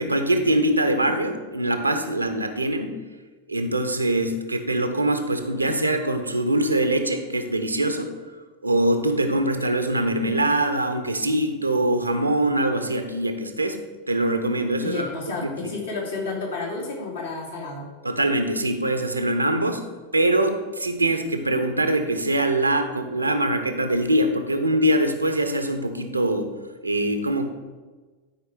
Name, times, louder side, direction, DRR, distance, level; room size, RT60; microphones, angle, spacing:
voice 1, 0.0-2.9 3.5-8.1 8.6-13.8 14.1-15.1 15.4-15.7 18.0-19.8 20.1-26.5 26.8-27.5, right 1 dB, 85° right, 7 dB, 0.9 m, -23 dB
voice 2, 14.8-17.9, left 3 dB, 70° left, -3 dB, 3.0 m, -31 dB
12.0 x 5.1 x 5.0 m, 1.3 s
figure-of-eight pair, 90°, 0 cm